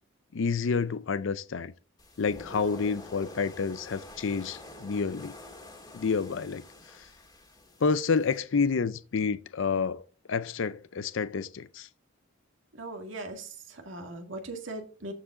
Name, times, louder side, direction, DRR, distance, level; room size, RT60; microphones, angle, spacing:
voice 1, 0.3-1.7 2.2-5.3 5.9-6.6 6.9-7.1 7.8-10.0 10.3-11.9, left 5 dB, 70° left, 0.5 m, -29 dB
sound 1, 2.0-8.4, left 1 dB, 20° left, 1.8 m, -48 dB
voice 2, 12.7-15.1, right 2 dB, 70° right, 2.1 m, -39 dB
13.5 x 4.9 x 3.8 m
head